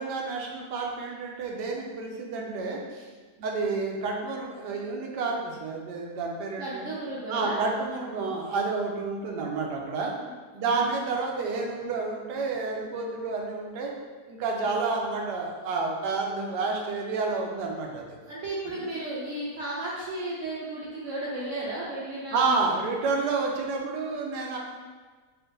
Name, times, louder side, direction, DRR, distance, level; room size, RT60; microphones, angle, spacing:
voice 1, 0.0-3.1 3.4-6.9 7.3-10.1 10.5-13.9 14.3-18.0 18.7-18.8 22.3-24.6, right 4 dB, 85° right, 0 dB, 1.2 m, -30 dB
voice 2, 6.6-7.6 10.2-10.3 10.6-10.9 14.6-14.8 18.3-22.7, right 2 dB, 65° right, -7 dB, 0.8 m, -34 dB
4.4 x 2.5 x 2.6 m, 1.4 s
omnidirectional pair, 1.7 m